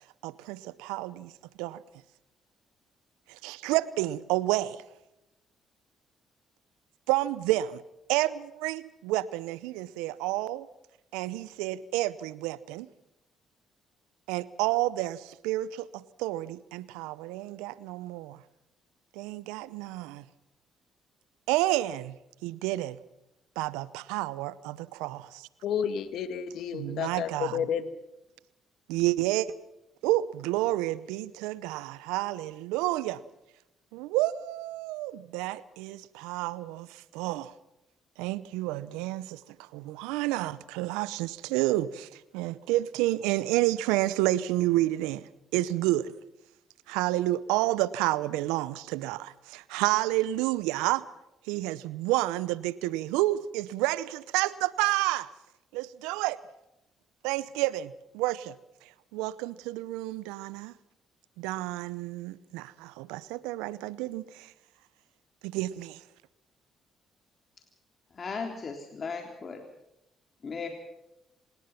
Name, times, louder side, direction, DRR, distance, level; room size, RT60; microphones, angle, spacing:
voice 1, 0.2-1.3 1.6-1.8 3.3-4.8 7.1-7.8 8.1-10.7 11.1-12.9 14.3-18.4 19.1-20.2 21.5-22.2 22.4-23.0 23.6-25.5 26.7-27.6 28.9-29.5 30.0-33.2 33.9-37.5 38.2-46.1 46.9-51.0 51.5-55.3 55.7-56.4 57.2-58.5 58.8-60.7 61.4-64.5 65.4-66.0, right 16 dB, 80° right, 19 dB, 0.7 m, -30 dB
voice 2, 25.6-27.9, left 8 dB, 70° left, 11 dB, 2.0 m, -31 dB
voice 3, 68.1-69.6 70.4-70.7, left 5 dB, 45° left, 4 dB, 3.5 m, -36 dB
26.0 x 20.0 x 5.8 m, 0.88 s
hypercardioid pair, 50°, 0 cm